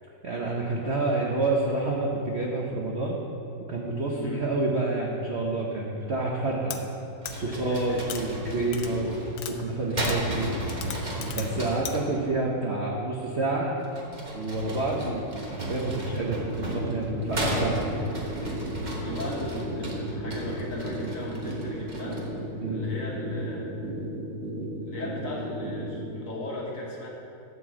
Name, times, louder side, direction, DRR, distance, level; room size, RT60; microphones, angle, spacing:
voice 1, 0.2-3.2 3.7-6.8 7.3-9.2 9.5-13.7 14.3-17.9 22.6-22.9, right 2 dB, 60° right, -2 dB, 0.6 m, -28 dB
sound 1, 6.7-6.8 7.2-7.3 8.0-8.2 8.7-8.9 9.3-9.5 10.0-10.2 10.7-11.5 11.8-11.9, left 9 dB, 70° left, 1.3 m, -36 dB
sound 2, 7.2-12.1 13.8-22.4, right 1 dB, 30° right, 0.9 m, -34 dB
voice 2, 11.2-11.6 19.0-22.3 22.7-23.8 24.8-27.1, left 1 dB, 45° left, -3 dB, 1.4 m, -37 dB
sound 3, 16.2-26.1, right 1 dB, 85° right, 2.4 m, -35 dB
11.0 x 4.5 x 7.5 m, 2.8 s
omnidirectional pair, 2.4 m